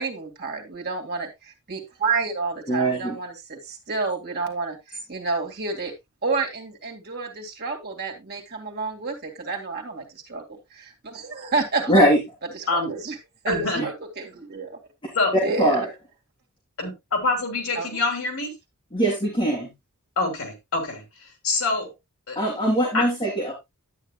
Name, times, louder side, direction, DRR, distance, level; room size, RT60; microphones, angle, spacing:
voice 1, 0.0-5.9 6.2-10.4 10.7-12.1 12.5-13.2 13.4-14.8 15.4-15.8 17.8-18.0, right 4 dB, 45° right, 1 dB, 2.3 m, -29 dB
voice 2, 2.7-3.2 11.9-12.2 13.8-13.9 15.6-15.9 18.9-19.7 22.4-23.5, equal, 20° left, -2 dB, 2.2 m, -21 dB
voice 3, 13.5-13.8 15.1-15.3 16.8-18.5 20.2-21.9 22.3-22.4 22.9-23.1, left 3 dB, 65° left, 5 dB, 2.9 m, -26 dB
11.0 x 9.1 x 2.3 m, 0.20 s
head